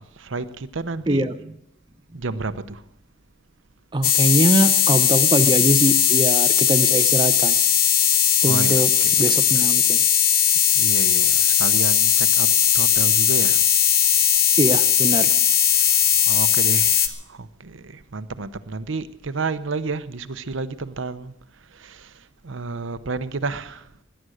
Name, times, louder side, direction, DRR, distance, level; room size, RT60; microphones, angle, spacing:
voice 1, 0.0-1.2 2.1-2.8 8.5-9.2 10.7-13.6 15.7-23.9, right 3 dB, 70° right, 0.8 m, -31 dB
voice 2, 3.9-7.6 8.4-8.9 9.2-10.0 14.6-15.3, right 1 dB, 20° right, 0.6 m, -22 dB
sound 1, 4.0-17.1, left 9 dB, 45° left, 1.1 m, -18 dB
17.5 x 11.5 x 6.4 m
head